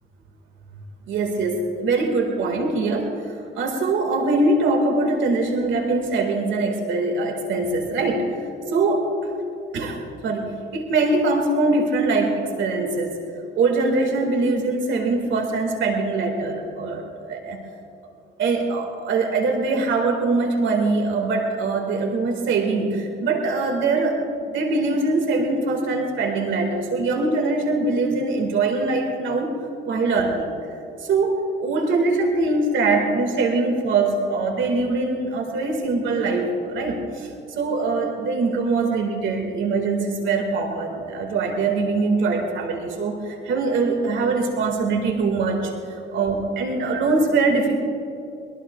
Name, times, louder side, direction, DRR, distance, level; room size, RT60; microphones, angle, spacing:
voice 1, 1.1-3.2 3.5-8.4 8.7-9.3 9.7-10.0 10.2-13.2 13.6-17.6 18.4-29.6 29.9-30.6 31.0-37.3 37.6-47.8, right 3 dB, 75° right, 3 dB, 2.0 m, -22 dB
23.0 x 21.5 x 2.4 m, 2.7 s
cardioid pair, 90°, 20 cm